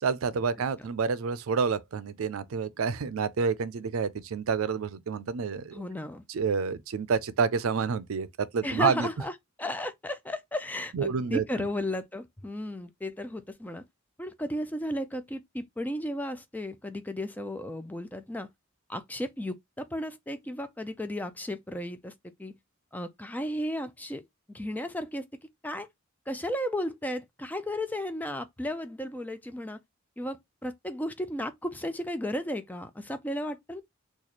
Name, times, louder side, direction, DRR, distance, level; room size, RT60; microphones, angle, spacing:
voice 1, 0.0-5.8 6.3-9.1 10.9-11.7, right 5 dB, 80° right, 0.4 m, -29 dB
voice 2, 5.7-6.2 8.6-9.3 9.6-13.8 14.2-18.5 18.9-22.1 22.4-22.5 22.9-25.3 25.6-25.9 26.3-29.8 30.2-33.8, left 1 dB, 10° left, 0.4 m, -34 dB
3.1 x 2.4 x 4.0 m
head